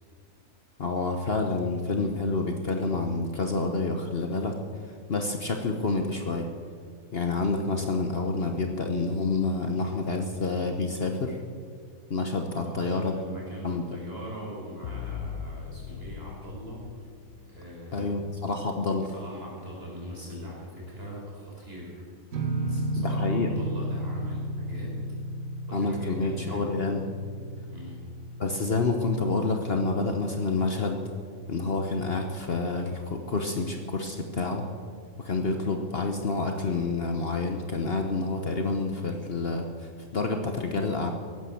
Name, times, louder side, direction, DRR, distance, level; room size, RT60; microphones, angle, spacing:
voice 1, 0.8-4.6 4.8-6.5 7.1-11.4 12.1-13.1 13.6-13.8 17.9-19.1 23.0-23.5 25.7-27.0 28.4-31.0 31.5-34.6 35.2-41.1, left 3 dB, 50° left, 4 dB, 1.2 m, -28 dB
voice 2, 12.7-17.0 17.5-18.3 19.0-21.9 22.4-25.0 25.7-26.7 27.7-28.0, equal, 45° right, -4 dB, 5.5 m, -41 dB
sound 1, 14.8-17.9, left 7 dB, 85° left, 1.2 m, -40 dB
sound 2, 22.3-29.9, right 1 dB, 70° right, 2.0 m, -34 dB
16.5 x 11.0 x 7.1 m, 2.1 s
omnidirectional pair, 1.4 m